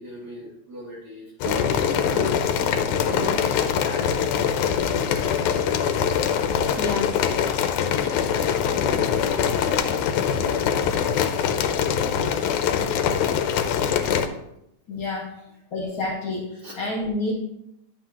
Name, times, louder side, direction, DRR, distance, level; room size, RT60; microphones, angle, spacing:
voice 1, 0.0-4.3 4.6-5.5 6.4-7.6 8.0-12.7 12.9-14.4 16.5-16.7, equal, 35° right, -6 dB, 3.2 m, -39 dB
sound 1, 1.4-14.3, left 8 dB, 85° left, 2.2 m, -23 dB
voice 2, 6.8-7.1 14.9-15.3 15.7-17.3, left 2 dB, 50° left, -3 dB, 2.3 m, -28 dB
11.5 x 8.1 x 2.9 m, 0.80 s
omnidirectional pair, 3.4 m